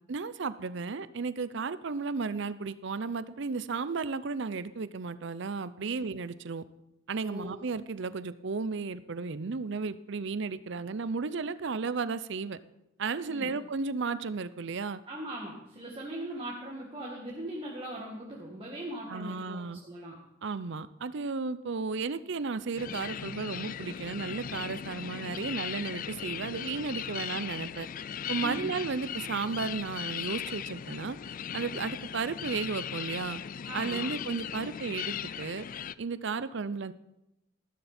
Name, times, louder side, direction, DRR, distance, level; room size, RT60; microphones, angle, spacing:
voice 1, 0.1-6.6 7.1-12.6 13.0-15.0 19.1-19.8 20.4-27.9 28.3-31.2 31.5-33.4 33.7-35.7 36.0-36.9, right 4 dB, 60° right, 15 dB, 0.6 m, -34 dB
voice 2, 7.2-7.6 13.3-13.5 15.1-20.2 28.4-28.7 33.7-34.1, right 1 dB, 25° right, -3 dB, 2.1 m, -40 dB
sound 1, 22.8-35.9, left 8 dB, 45° left, 0.4 m, -38 dB
14.5 x 13.0 x 4.3 m, 0.88 s
head